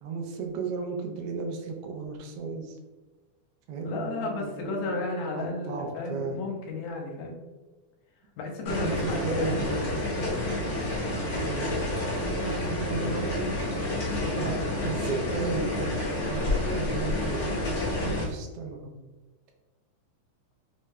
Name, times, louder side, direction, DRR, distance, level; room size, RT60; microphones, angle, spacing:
voice 1, 0.0-2.7 3.7-4.9 5.3-6.3 8.7-9.9 11.3-11.8 12.2-13.5 14.3-19.0, right 4 dB, 80° right, 2 dB, 1.3 m, -34 dB
voice 2, 3.8-7.4 8.4-10.0, left 3 dB, 80° left, 0 dB, 2.1 m, -33 dB
sound 1, 8.6-18.3, left 1 dB, 55° left, 1.0 m, -29 dB
4.9 x 3.2 x 2.2 m, 1.2 s
omnidirectional pair, 3.4 m